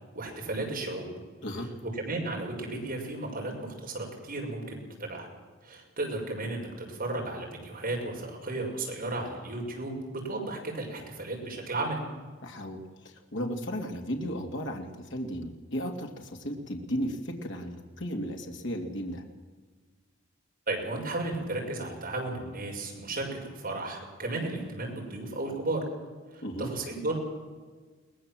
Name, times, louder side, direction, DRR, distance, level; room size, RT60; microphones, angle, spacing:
voice 1, 0.1-1.1 1.6-1.7 1.9-5.3 5.6-12.0 20.7-25.8 26.3-27.2, right 2 dB, 45° right, 0 dB, 5.9 m, -34 dB
voice 2, 12.4-19.2 26.4-26.7, equal, 65° left, 2 dB, 2.4 m, -35 dB
22.0 x 19.5 x 7.6 m, 1.4 s
head